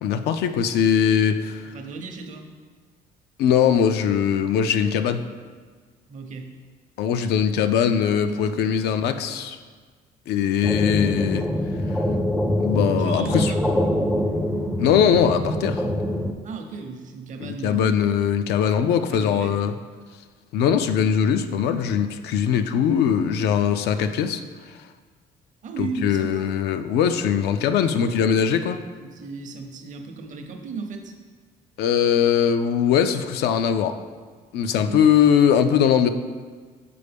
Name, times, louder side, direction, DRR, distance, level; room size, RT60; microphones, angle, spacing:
voice 1, 0.0-1.7 3.4-5.2 7.0-9.6 10.3-11.5 12.6-13.5 14.8-15.9 17.4-19.7 20.5-24.4 25.8-28.8 31.8-34.0 34.5-36.1, left 8 dB, 75° left, 9 dB, 0.4 m, -21 dB
voice 2, 1.7-2.5 6.1-6.5 8.3-8.8 13.0-13.7 16.4-18.1 19.1-19.6 25.6-26.5 28.9-31.1 34.8-35.1, right 4 dB, 50° right, 5 dB, 0.7 m, -35 dB
sound 1, 10.6-16.3, left 1 dB, ahead, 0.4 m, -24 dB
6.8 x 4.1 x 3.4 m, 1.5 s
cardioid pair, 110°, 17 cm